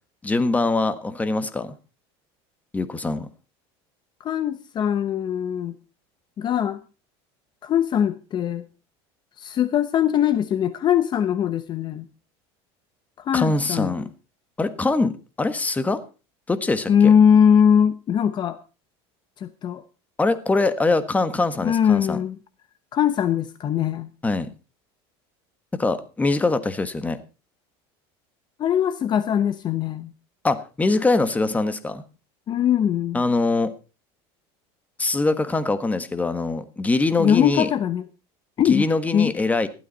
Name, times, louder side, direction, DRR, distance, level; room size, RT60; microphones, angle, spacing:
voice 1, 0.2-1.7 2.7-3.3 13.3-14.1 14.6-16.0 16.5-16.9 20.2-22.2 24.2-24.5 25.7-27.2 30.4-32.0 33.1-33.7 35.0-37.7 38.6-39.7, left 3 dB, 10° left, 1.4 m, -23 dB
voice 2, 4.2-5.8 6.4-6.8 7.6-8.7 9.4-12.0 13.2-14.1 16.9-18.6 19.4-19.8 21.6-22.4 22.9-24.1 28.6-30.1 32.5-33.2 37.2-38.0 38.6-38.9 39.1-39.3, left 8 dB, 35° left, 0.9 m, -21 dB
15.5 x 12.0 x 4.2 m
supercardioid pair, 135°, 13 cm